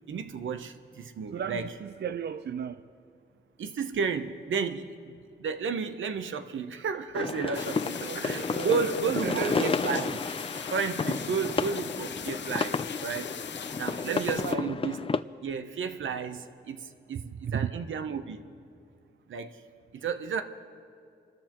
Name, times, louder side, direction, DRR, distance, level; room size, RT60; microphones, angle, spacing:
voice 1, 0.1-1.7 3.6-10.2 10.7-13.3 13.8-15.2 15.4-18.4 19.3-19.6 19.9-20.4, right 5 dB, 80° right, 0.8 m, -32 dB
voice 2, 1.3-2.9 8.1-9.8 14.0-14.7 17.3-17.8, right 8 dB, 60° right, 0.5 m, -35 dB
sound 1, 7.2-15.2, left 4 dB, 30° left, 0.4 m, -32 dB
sound 2, 7.5-14.5, left 7 dB, 65° left, 0.7 m, -40 dB
26.0 x 13.0 x 3.0 m
cardioid pair, 60°, 20 cm